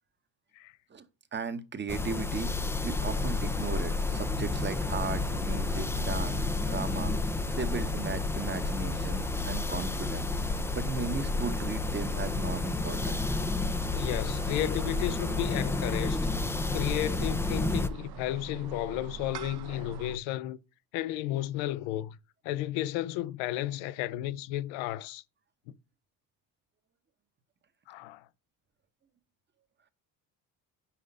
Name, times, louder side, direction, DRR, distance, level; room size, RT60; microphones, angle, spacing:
voice 1, 1.3-2.5 2.8-7.1 7.5-13.2, right 5 dB, 25° right, 0.9 m, -36 dB
sound 1, 1.9-17.9, left 3 dB, 5° left, 0.3 m, -31 dB
sound 2, 3.0-20.2, right 6 dB, 60° right, 0.8 m, -45 dB
voice 2, 13.9-16.3 16.7-20.6 20.9-22.2 22.4-25.2 27.9-28.2, left 14 dB, 90° left, 0.7 m, -33 dB
5.8 x 4.9 x 5.3 m
cardioid pair, 100°, 45 cm